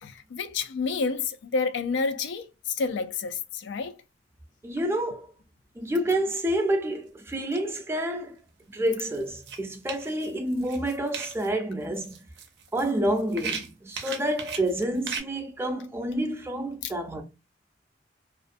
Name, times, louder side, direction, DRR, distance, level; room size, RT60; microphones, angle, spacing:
voice 1, 0.0-4.0 16.8-16.9, left 4 dB, 85° left, 0.3 m, -29 dB
voice 2, 4.6-5.3 5.8-8.4 8.7-12.2 12.7-17.2, right 1 dB, 15° right, 0.4 m, -28 dB
sound 1, 8.6-8.7 9.1-11.5 11.9-15.2, right 6 dB, 70° right, 0.5 m, -37 dB
2.4 x 2.1 x 2.4 m
head